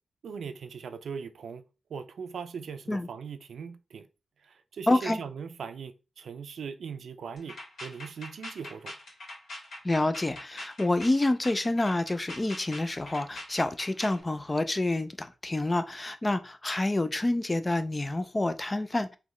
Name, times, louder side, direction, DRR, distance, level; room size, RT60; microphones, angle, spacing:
voice 1, 0.2-1.6 1.9-4.1 4.4-8.9, right 6 dB, 85° right, 0.4 m, -40 dB
voice 2, 4.9-5.2 9.8-19.2, left 2 dB, 20° left, 0.3 m, -28 dB
sound 1, 7.4-14.2, left 1 dB, 70° left, 2.1 m, -43 dB
3.9 x 3.0 x 3.1 m
wide cardioid pair, 150°, 0 cm